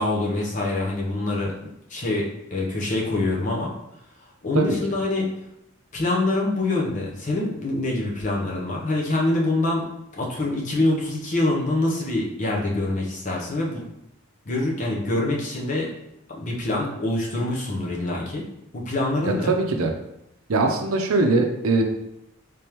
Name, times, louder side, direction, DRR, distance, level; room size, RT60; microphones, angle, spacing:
voice 1, 0.0-1.5 1.9-3.7 4.4-5.3 5.9-9.8 10.2-13.8 14.5-15.9 16.3-18.4 18.7-19.5, left 2 dB, 35° left, -2 dB, 0.7 m, -25 dB
voice 2, 19.2-19.9 20.5-21.8, right 3 dB, 90° right, 4 dB, 0.6 m, -21 dB
3.4 x 3.4 x 2.9 m, 0.82 s
head